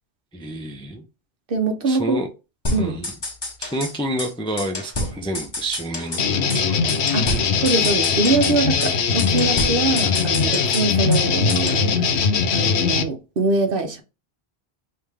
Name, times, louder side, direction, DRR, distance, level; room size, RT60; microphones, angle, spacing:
voice 1, 0.3-1.0 1.8-2.3 2.8-3.1 3.6-6.8, equal, 5° left, 0.4 m, -29 dB
voice 2, 1.5-2.2 2.7-3.0 7.1-12.2 12.5-14.0, right 3 dB, 60° right, 0.9 m, -23 dB
sound 1, 2.6-3.9 4.2-4.3 4.6-6.2 6.5-6.6 6.9-8.5 8.8-8.9 9.2-11.2 11.5-11.8, left 1 dB, 25° left, 0.9 m, -29 dB
sound 2, 6.2-13.0, left 6 dB, 85° left, 0.9 m, -20 dB
3.2 x 2.8 x 3.5 m
omnidirectional pair, 1.1 m